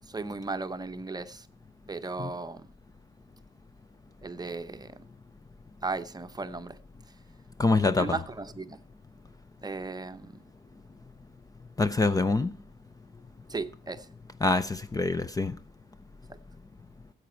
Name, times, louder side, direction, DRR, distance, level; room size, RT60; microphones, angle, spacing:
voice 1, 0.1-1.5 1.9-2.7 4.2-5.0 5.8-6.8 8.0-8.8 9.6-10.4 13.5-14.1 16.3-16.4, right 3 dB, 20° right, 0.8 m, -36 dB
voice 2, 7.6-8.2 11.8-12.5 14.4-15.6, left 3 dB, 20° left, 0.6 m, -25 dB
13.5 x 8.1 x 4.4 m
cardioid pair, 90°, 20 cm